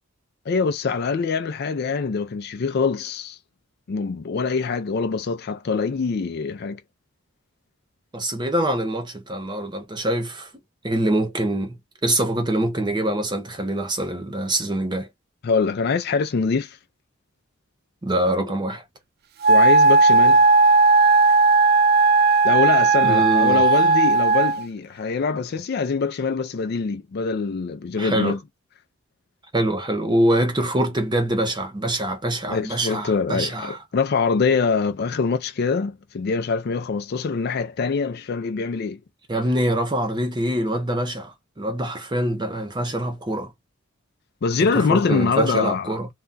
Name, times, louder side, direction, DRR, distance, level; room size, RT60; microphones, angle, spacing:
voice 1, 0.5-3.4 3.9-6.8 15.4-16.8 18.4-18.5 19.5-20.4 22.4-28.4 32.5-39.0 44.4-45.9, left 5 dB, 50° left, 0.4 m, -24 dB
voice 2, 8.1-10.5 10.8-15.1 18.0-18.8 23.0-23.7 28.0-28.4 29.5-33.8 39.3-43.5 44.6-46.1, right 1 dB, 20° right, 0.8 m, -24 dB
Wind instrument woodwind instrument, 19.4-24.6, right 3 dB, 45° right, 0.3 m, -16 dB
2.3 x 2.2 x 3.9 m
head